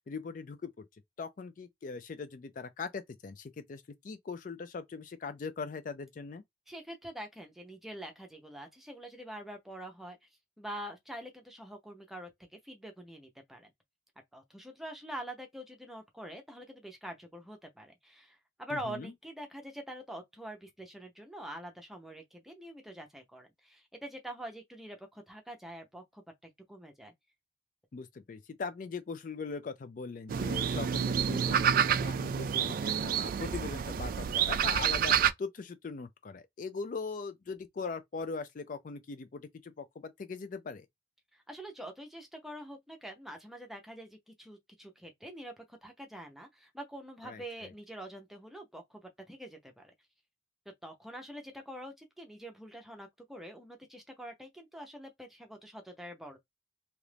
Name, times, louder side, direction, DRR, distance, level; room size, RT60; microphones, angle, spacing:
voice 1, 0.1-0.9 1.2-6.4 18.7-19.1 27.9-40.9 47.2-47.7, left 4 dB, 45° left, 0.4 m, -41 dB
voice 2, 6.7-10.3 10.6-12.3 12.6-13.7 14.3-27.1 41.3-49.0 49.3-49.9 50.8-56.4, right 1 dB, ahead, 0.7 m, -45 dB
sound 1, 30.3-35.3, right 8 dB, 50° right, 0.3 m, -28 dB
2.9 x 2.5 x 3.3 m
head